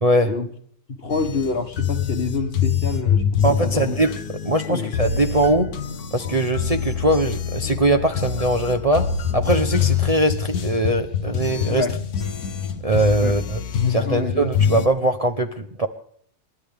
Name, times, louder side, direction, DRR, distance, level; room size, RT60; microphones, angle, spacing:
voice 1, 0.0-0.3 3.4-4.1 4.4-5.7 6.1-9.1 9.3-11.9 12.8-13.6 13.9-15.9, right 1 dB, 30° right, 6 dB, 0.8 m, -21 dB
voice 2, 0.9-4.0 4.7-4.9 11.7-11.9 13.2-13.3 13.8-14.6, left 3 dB, 45° left, 8 dB, 1.5 m, -27 dB
sound 1, 1.1-14.9, left 7 dB, 85° left, 1.6 m, -25 dB
29.5 x 11.5 x 3.5 m, 0.65 s
omnidirectional pair, 1.6 m